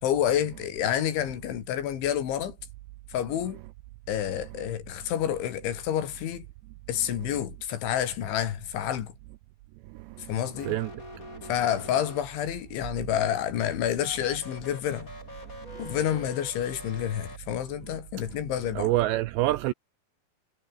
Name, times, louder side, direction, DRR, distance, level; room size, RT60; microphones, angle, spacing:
voice 1, 0.0-2.6 3.1-3.6 4.1-6.5 6.9-9.1 10.2-10.8 11.5-15.1 15.8-18.9, left 10 dB, 70° left, 4.7 m, -29 dB
sound 1, 10.5-12.7 13.9-17.4, left 2 dB, 15° left, 6.7 m, -44 dB
voice 2, 18.8-19.7, right 16 dB, 85° right, 2.6 m, -25 dB
omnidirectional pair, 5.8 m